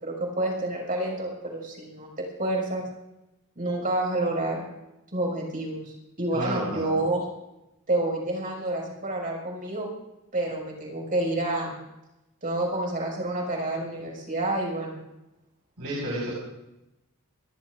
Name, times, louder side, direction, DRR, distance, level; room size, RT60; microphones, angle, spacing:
voice 1, 0.0-2.1 2.4-2.8 3.6-4.6 5.1-7.2 7.9-9.9 10.3-11.7 12.4-15.0, right 2 dB, 40° right, -1 dB, 5.9 m, -28 dB
voice 2, 6.3-6.8 15.8-16.3, right 1 dB, 85° right, -5 dB, 5.2 m, -30 dB
29.0 x 13.5 x 2.6 m, 0.94 s
head